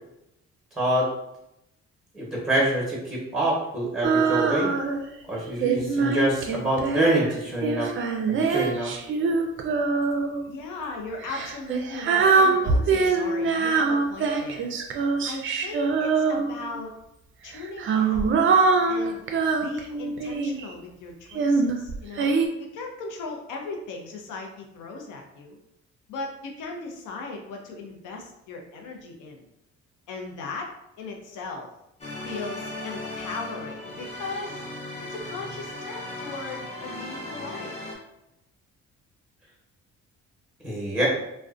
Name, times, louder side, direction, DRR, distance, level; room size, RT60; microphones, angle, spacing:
voice 1, 0.8-1.1 2.1-4.7 5.3-7.9 8.3-8.9 40.6-41.1, right 1 dB, ahead, -5 dB, 0.9 m, -26 dB
Female singing, 4.0-5.1 5.6-10.4 11.2-16.8 17.5-20.7 21.3-22.5, right 4 dB, 45° right, 0.4 m, -23 dB
voice 2, 10.5-14.7 15.2-16.9 17.4-18.3 18.9-19.2 19.5-22.3 22.6-25.6 26.1-29.4 30.1-30.7 31.0-31.7 32.2-34.6 35.1-37.8, left 3 dB, 80° left, 1 dB, 0.6 m, -37 dB
sound 1, 32.0-38.0, left 2 dB, 20° left, 0.6 m, -37 dB
2.4 x 2.1 x 2.4 m, 0.85 s
cardioid pair, 90°, 30 cm